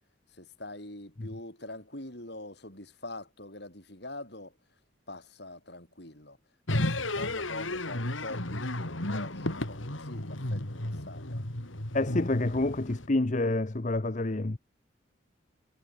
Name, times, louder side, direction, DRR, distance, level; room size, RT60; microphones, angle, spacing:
voice 1, 0.3-4.5 5.1-6.4 6.7-11.5, left 2 dB, 55° left, 6.5 m, -44 dB
sound 1, 6.7-13.1, left 1 dB, 90° left, 3.7 m, -33 dB
voice 2, 11.9-14.6, left 2 dB, 40° left, 0.8 m, -28 dB
head